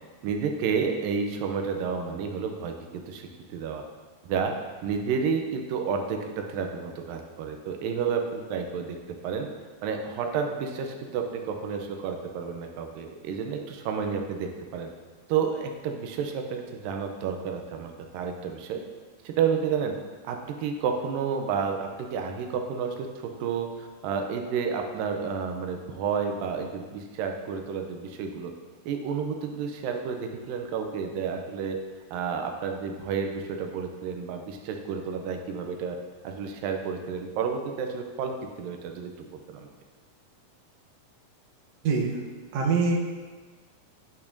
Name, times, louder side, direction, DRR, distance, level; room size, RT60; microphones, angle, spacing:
voice 1, 0.2-3.9 4.2-4.5 4.8-9.0 9.2-9.5 9.8-14.9 15.3-18.8 19.2-19.9 20.2-28.5 28.9-31.8 32.1-36.0 36.2-38.3 38.6-39.7, right 6 dB, 90° right, 4 dB, 2.4 m, -30 dB
voice 2, 41.8-42.2 42.5-43.0, right 4 dB, 65° right, -2 dB, 1.8 m, -24 dB
10.5 x 5.7 x 2.6 m, 1.4 s
omnidirectional pair, 3.9 m